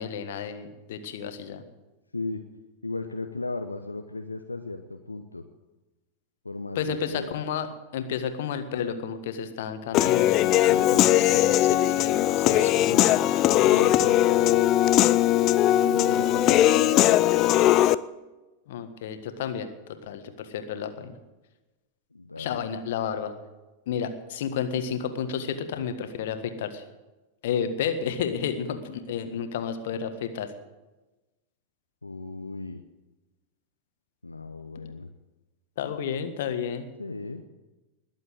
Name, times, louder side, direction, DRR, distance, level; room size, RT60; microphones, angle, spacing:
voice 1, 0.0-1.6 6.8-7.7 7.9-13.8 18.7-19.7 20.0-21.2 22.4-23.3 23.9-26.8 27.4-30.5 35.8-36.9, left 7 dB, 55° left, 8 dB, 1.6 m, -31 dB
voice 2, 2.1-2.4 2.8-5.4 6.4-7.3 13.6-14.6 15.8-17.3 22.1-22.6 32.0-32.8 34.2-35.1 37.0-37.4, left 3 dB, 80° left, 6 dB, 0.8 m, -36 dB
Human voice / Piano, 9.9-18.0, left 13 dB, 35° left, 0.5 m, -20 dB
20.5 x 7.6 x 7.9 m, 1.1 s
figure-of-eight pair, 90°, 0 cm